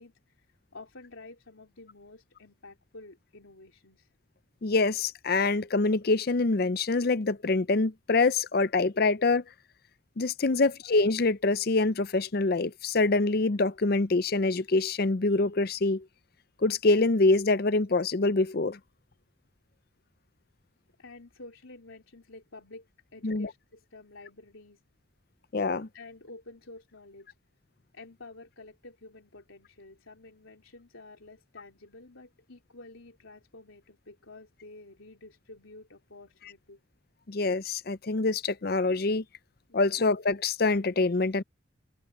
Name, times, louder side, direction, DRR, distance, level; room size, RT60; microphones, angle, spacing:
voice 1, 0.0-4.1 10.4-10.8 21.0-22.9 23.1-24.8 25.9-27.3 27.9-36.8 39.7-40.0, left 2 dB, 85° left, 3.5 m, -50 dB
voice 2, 4.6-9.4 10.2-16.1 16.6-18.8 23.2-23.5 25.5-25.9 37.3-39.2 39.7-41.4, left 3 dB, 50° left, 0.5 m, -25 dB
head